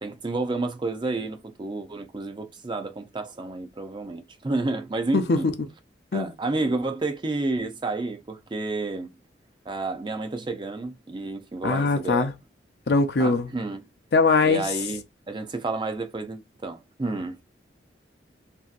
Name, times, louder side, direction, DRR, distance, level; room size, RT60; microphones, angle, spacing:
voice 1, 0.0-5.5 6.1-9.1 9.7-12.3 13.2-13.8 14.5-17.4, right 2 dB, 25° right, 0.5 m, -30 dB
voice 2, 5.1-5.5 6.1-6.3 11.6-12.3 12.9-13.5 14.1-14.7, left 3 dB, 65° left, 0.5 m, -21 dB
3.0 x 2.7 x 2.4 m
head